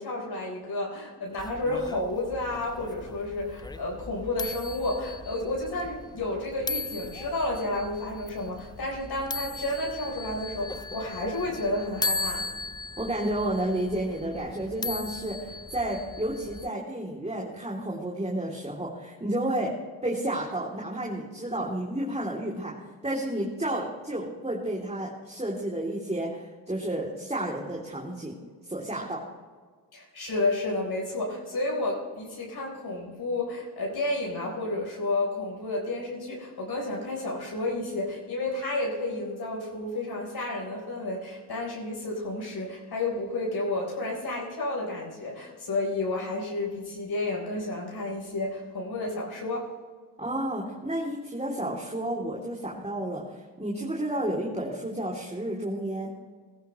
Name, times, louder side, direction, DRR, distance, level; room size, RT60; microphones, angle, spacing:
voice 1, 0.0-12.5 29.9-49.7, left 2 dB, 50° left, -2 dB, 4.2 m, -31 dB
sound 1, 1.4-16.7, left 3 dB, 10° left, 0.4 m, -37 dB
voice 2, 13.0-19.7 20.0-22.7 23.0-28.4 28.7-29.2 50.2-56.1, right 1 dB, 15° right, -4 dB, 3.0 m, -31 dB
16.0 x 14.5 x 3.2 m, 1.5 s
supercardioid pair, 50°, 47 cm